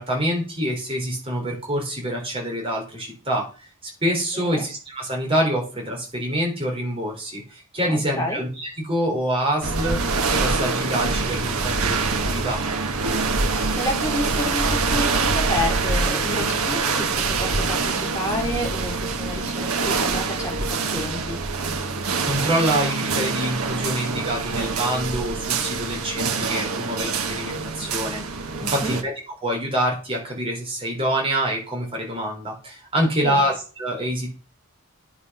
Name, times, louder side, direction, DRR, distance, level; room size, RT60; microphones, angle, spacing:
voice 1, 0.0-3.5 3.8-10.0 10.3-12.6 22.2-28.2 28.7-34.3, equal, 25° right, -1 dB, 3.9 m, -26 dB
voice 2, 4.3-4.7 7.8-8.4 13.7-21.9 28.6-29.0 33.0-33.5, left 1 dB, 15° left, -1 dB, 3.3 m, -30 dB
sound 1, 9.6-29.0, right 4 dB, 75° right, 1.4 m, -25 dB
9.5 x 6.2 x 5.5 m, 0.36 s
head